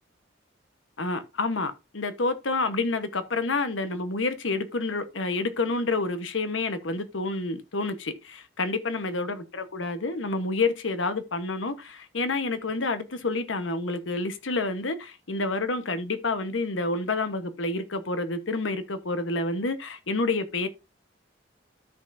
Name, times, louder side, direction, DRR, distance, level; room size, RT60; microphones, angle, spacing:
voice 1, 1.0-20.7, left 3 dB, 90° left, 1.1 m, -29 dB
13.0 x 5.5 x 2.6 m
head